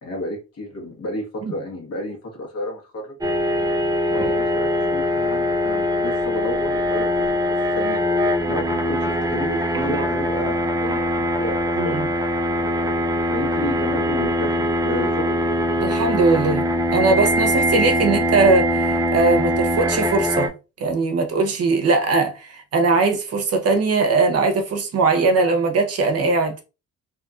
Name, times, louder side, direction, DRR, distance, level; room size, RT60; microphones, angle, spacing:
voice 1, 0.0-3.2 4.1-12.0 13.3-15.6, left 1 dB, 55° left, 1.3 m, -32 dB
sound 1, 3.2-20.5, equal, 15° right, 0.3 m, -22 dB
voice 2, 11.8-12.1 15.8-16.6 16.9-20.5 20.8-26.6, right 3 dB, 55° right, 0.7 m, -20 dB
2.8 x 2.5 x 2.4 m
cardioid pair, 90°, 30 cm